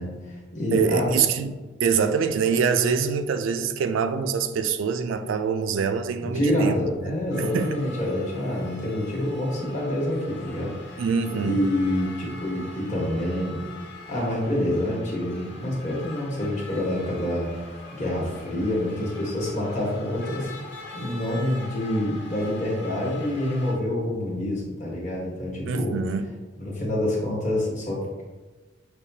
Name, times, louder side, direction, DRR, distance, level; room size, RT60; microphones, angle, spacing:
voice 1, 0.0-1.1 6.2-10.9 11.4-13.6 14.1-17.5 17.9-20.5 20.9-25.9 26.6-28.2, left 1 dB, 40° left, 1.2 m, -27 dB
voice 2, 0.7-6.7 7.4-7.8 11.0-11.7 25.6-26.3, right 6 dB, 80° right, 0.3 m, -24 dB
sound 1, 7.3-23.7, left 3 dB, 60° left, 0.7 m, -43 dB
6.6 x 2.2 x 2.7 m
head